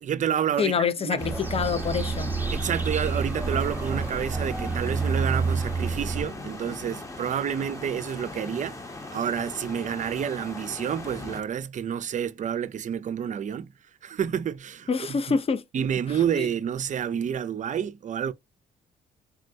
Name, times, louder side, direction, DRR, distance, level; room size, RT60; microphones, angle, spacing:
voice 1, 0.0-1.2 2.5-8.8 9.1-13.7 14.0-15.2 15.7-18.3, right 8 dB, 50° right, 0.5 m, -29 dB
voice 2, 0.6-2.3 14.9-15.6 16.4-16.5, left 6 dB, 35° left, 0.6 m, -26 dB
sound 1, 1.2-11.4, left 2 dB, 20° left, 0.9 m, -39 dB
sound 2, 1.2-6.2, right 4 dB, 10° right, 0.7 m, -28 dB
3.7 x 2.1 x 2.6 m
cardioid pair, 75°, 17 cm